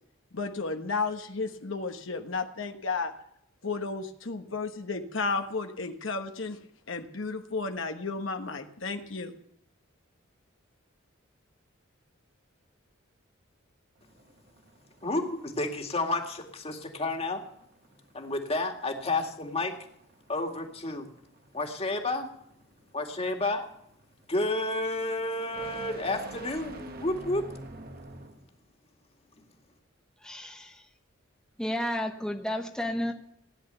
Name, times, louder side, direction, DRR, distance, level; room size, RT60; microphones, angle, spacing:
voice 1, 0.3-3.1 3.6-6.6 6.9-9.4, left 4 dB, 70° left, 6 dB, 1.2 m, -33 dB
sound 1, 14.0-28.5, right 2 dB, 50° right, 1.5 m, -49 dB
voice 2, 15.0-17.5 18.1-19.8 20.3-21.1 21.5-22.3 22.9-23.7 24.3-27.4, left 2 dB, 30° left, 3 dB, 2.2 m, -30 dB
voice 3, 30.2-30.8 31.6-33.1, left 1 dB, 5° left, 2 dB, 1.0 m, -32 dB
17.5 x 10.5 x 6.9 m, 0.73 s
head